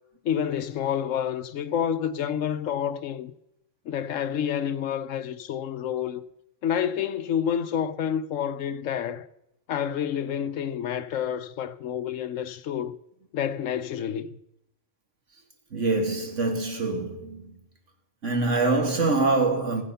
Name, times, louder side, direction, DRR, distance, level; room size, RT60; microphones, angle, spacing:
voice 1, 0.2-3.3 3.9-6.2 6.6-9.3 9.7-13.0 13.3-14.3, left 9 dB, 70° left, 1.0 m, -28 dB
voice 2, 15.7-17.5 18.2-19.8, right 3 dB, 60° right, 2.4 m, -24 dB
16.0 x 9.2 x 5.6 m
omnidirectional pair, 1.4 m